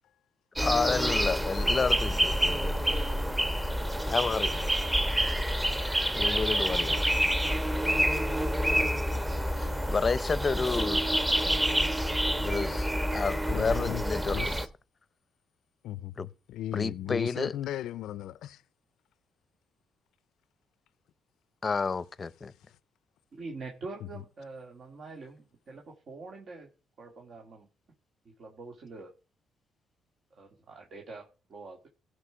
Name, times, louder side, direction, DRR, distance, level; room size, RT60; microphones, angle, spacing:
voice 1, 0.6-2.8 4.0-4.5 6.2-7.0 7.8-8.0 9.6-11.2 12.4-14.6 16.2-16.3 16.7-17.5 21.6-22.5, left 4 dB, 35° left, 0.6 m, -30 dB
sound 1, 0.6-14.7, equal, 10° right, 1.1 m, -28 dB
voice 2, 13.5-14.7 15.8-18.6 24.0-24.1, left 13 dB, 85° left, 0.4 m, -36 dB
voice 3, 23.3-26.7 27.0-27.7 28.4-29.1 30.4-31.9, right 3 dB, 55° right, 2.1 m, -44 dB
16.0 x 5.3 x 5.0 m
cardioid pair, 90°, 0 cm